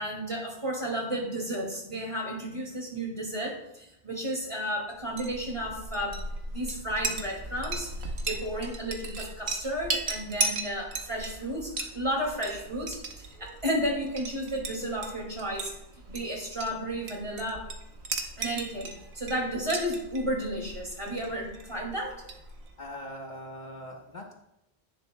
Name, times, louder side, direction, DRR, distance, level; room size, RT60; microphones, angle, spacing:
voice 1, 0.0-6.2 6.5-15.7 16.1-17.7 18.4-22.2, equal, 30° right, -1 dB, 2.3 m, -33 dB
Chink clink, 5.0-22.8, right 3 dB, 80° right, 1.2 m, -37 dB
voice 2, 13.3-13.6 22.8-24.3, left 1 dB, 50° left, 1 dB, 1.1 m, -42 dB
10.5 x 9.8 x 2.2 m, 0.84 s
omnidirectional pair, 1.1 m